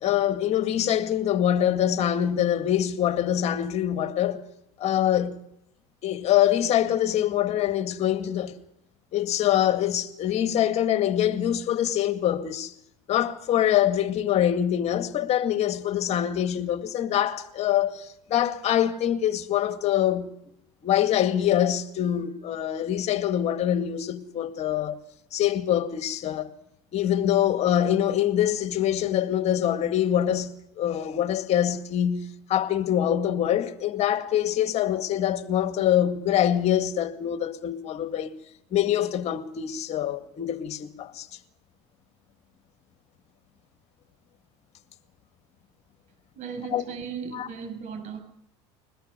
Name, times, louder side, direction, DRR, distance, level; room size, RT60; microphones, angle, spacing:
voice 1, 0.0-4.4 4.8-5.4 6.0-8.6 9.1-12.7 13.1-20.3 20.8-25.0 25.3-26.5 26.9-38.3 38.7-41.3 46.7-46.8 47.3-47.5, left 11 dB, 45° left, 2.1 m, -24 dB
voice 2, 46.4-48.2, right 6 dB, 50° right, 7.2 m, -36 dB
22.0 x 21.0 x 6.8 m
supercardioid pair, 105°, 15 cm